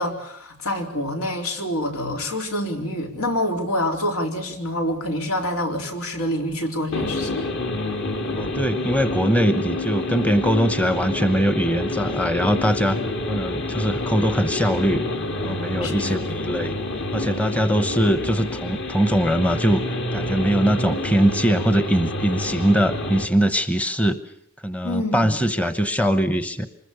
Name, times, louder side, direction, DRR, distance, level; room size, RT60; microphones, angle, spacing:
voice 1, 0.0-7.4 15.8-16.6 24.8-25.4, left 1 dB, 85° left, 3 dB, 4.0 m, -27 dB
sound 1, 6.9-23.3, left 2 dB, 55° left, 2.4 m, -28 dB
voice 2, 8.3-13.0 13.3-15.1 15.4-16.8 17.1-19.8 20.1-24.2 24.6-26.7, equal, 5° left, 11 dB, 0.9 m, -21 dB
25.5 x 21.5 x 6.9 m, 0.69 s
head